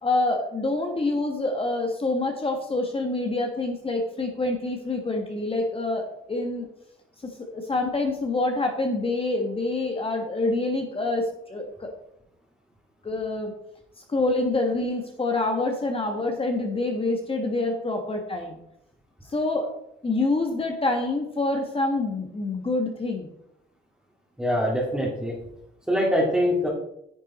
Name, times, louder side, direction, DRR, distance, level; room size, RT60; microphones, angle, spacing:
voice 1, 0.0-6.7 7.2-11.9 13.0-13.5 14.0-18.6 19.3-19.7 20.0-23.3, left 2 dB, 30° left, 2 dB, 1.5 m, -26 dB
voice 2, 24.4-25.4 25.9-26.7, equal, 5° right, -5 dB, 2.3 m, -23 dB
10.0 x 7.4 x 4.2 m, 0.79 s
cardioid pair, 90°, 20 cm